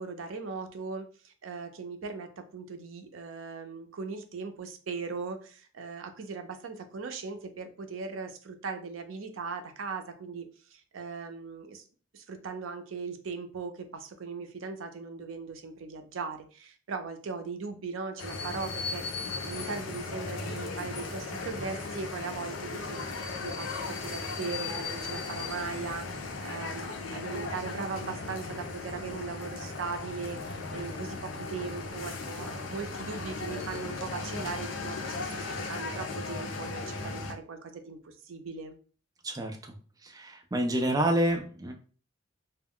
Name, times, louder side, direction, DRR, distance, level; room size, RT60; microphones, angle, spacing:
voice 1, 0.0-11.8 12.1-38.8, right 4 dB, 85° right, 7 dB, 0.5 m, -39 dB
sound 1, 18.2-37.3, left 3 dB, 75° left, 0.5 m, -37 dB
voice 2, 39.2-39.7 40.0-41.7, right 1 dB, 20° right, 3 dB, 0.4 m, -28 dB
2.3 x 2.1 x 3.5 m, 0.40 s
head